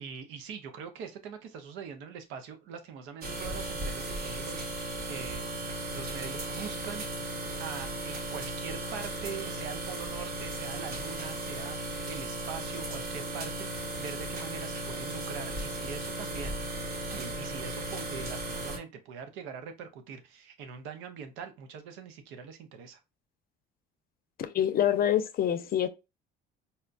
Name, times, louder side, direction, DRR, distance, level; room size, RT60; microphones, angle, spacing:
voice 1, 0.0-7.3 7.6-16.6 17.1-23.0, right 6 dB, 85° right, 0.7 m, -43 dB
sound 1, 3.2-18.8, right 2 dB, 55° right, 1.0 m, -36 dB
voice 2, 24.4-25.9, left 10 dB, 50° left, 0.5 m, -26 dB
4.2 x 2.2 x 2.5 m
supercardioid pair, 85°, 19 cm